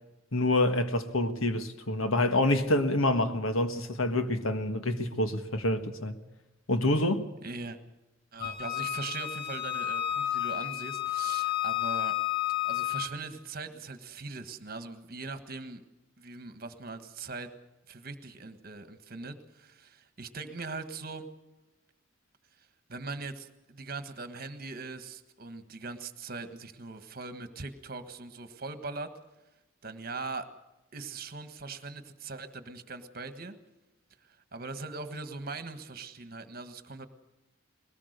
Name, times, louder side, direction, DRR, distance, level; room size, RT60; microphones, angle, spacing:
voice 1, 0.3-6.2 6.7-7.2, left 1 dB, 80° left, 1.6 m, -27 dB
voice 2, 7.4-7.8 8.3-12.1 12.6-15.8 16.2-17.5 17.9-21.3 22.9-29.1 29.8-30.5 30.9-33.6 34.5-37.1, right 3 dB, 45° right, 1.5 m, -40 dB
Wind instrument woodwind instrument, 8.4-13.1, left 13 dB, 50° left, 1.8 m, -31 dB
21.0 x 18.5 x 6.7 m
head